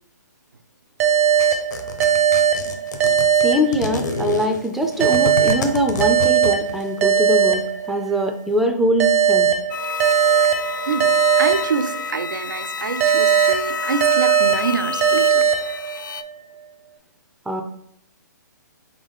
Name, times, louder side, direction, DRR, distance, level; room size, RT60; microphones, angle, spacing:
sound 1, 1.0-4.3 5.0-8.3 9.0-12.3 13.0-16.3, right 8 dB, 45° right, 0.6 m, -19 dB
sound 2, 1.4-6.9, left 3 dB, 65° left, 0.7 m, -28 dB
voice 1, 3.4-9.5 17.5-17.6, equal, ahead, 0.3 m, -22 dB
sound 3, 9.7-16.2, left 5 dB, 80° left, 0.4 m, -28 dB
voice 2, 10.9-15.5, right 5 dB, 85° right, 0.4 m, -26 dB
3.9 x 3.5 x 3.4 m
figure-of-eight pair, 130°, 10 cm